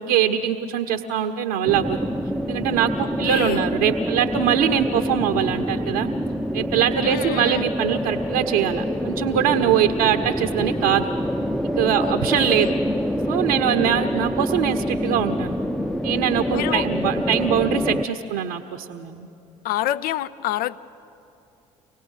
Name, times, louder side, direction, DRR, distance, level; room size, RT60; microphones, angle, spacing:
voice 1, 0.0-2.0 2.5-6.1 6.5-11.1 11.8-12.7 13.3-15.6 16.0-19.3, right 10 dB, 75° right, 4 dB, 0.8 m, -22 dB
sound 1, 1.7-18.0, equal, ahead, 0.7 m, -26 dB
voice 2, 3.0-3.7 7.0-7.7 12.0-12.8 16.5-16.9 19.6-20.8, left 13 dB, 60° left, 16 dB, 0.5 m, -28 dB
25.0 x 17.5 x 6.4 m, 2.7 s
hypercardioid pair, 60°, 17 cm